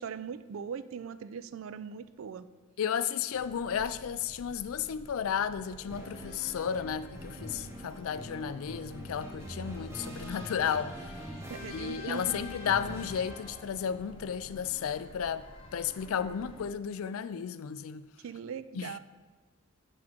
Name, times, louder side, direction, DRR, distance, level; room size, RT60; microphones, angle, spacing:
voice 1, 0.0-2.5 11.5-12.4 18.2-19.0, right 7 dB, 70° right, 0.3 m, -40 dB
voice 2, 2.8-11.2 11.7-18.1 18.8-18.9, left 8 dB, 75° left, 0.3 m, -33 dB
sound 1, 3.3-16.7, left 1 dB, 25° left, 0.7 m, -51 dB
sound 2, 5.9-13.8, equal, 10° right, 0.9 m, -44 dB
7.7 x 3.7 x 6.1 m
head